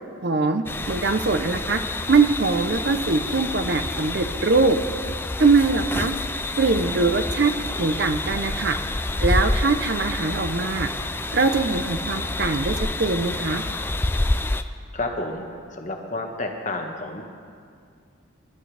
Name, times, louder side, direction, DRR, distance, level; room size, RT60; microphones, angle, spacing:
voice 1, 0.2-1.8 2.1-4.8 5.4-6.1 6.6-7.5 7.8-8.8 9.2-10.9 11.3-13.6, right 3 dB, 55° right, 9 dB, 0.7 m, -22 dB
sound 1, 0.7-14.6, left 2 dB, 10° left, 0.4 m, -28 dB
voice 2, 14.9-15.4 15.7-17.2, left 2 dB, 40° left, 3 dB, 1.4 m, -30 dB
26.0 x 12.5 x 3.4 m, 2.3 s
head